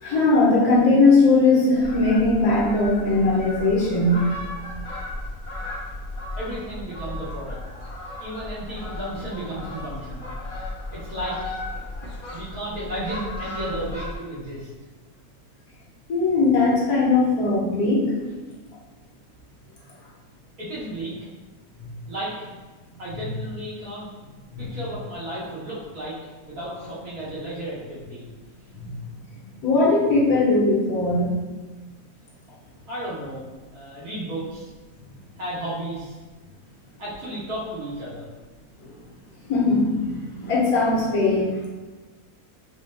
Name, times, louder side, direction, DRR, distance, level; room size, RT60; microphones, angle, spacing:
voice 1, 0.0-4.2 16.1-18.1 24.5-24.7 28.7-28.9 29.5-31.3 38.8-38.9 39.5-41.6, left 3 dB, 85° left, -6 dB, 1.5 m, -19 dB
Fowl, 1.7-14.2, left 1 dB, 30° left, 0.7 m, -35 dB
voice 2, 6.4-7.6 8.2-10.3 10.9-11.4 12.3-14.7 20.6-21.1 22.1-22.3 23.0-24.1 24.6-26.1 26.4-28.3 32.9-33.4 33.7-34.7 35.4-36.2 37.0-38.2, right 1 dB, 80° right, -8 dB, 1.8 m, -33 dB
4.3 x 2.1 x 3.3 m, 1.3 s
omnidirectional pair, 1.5 m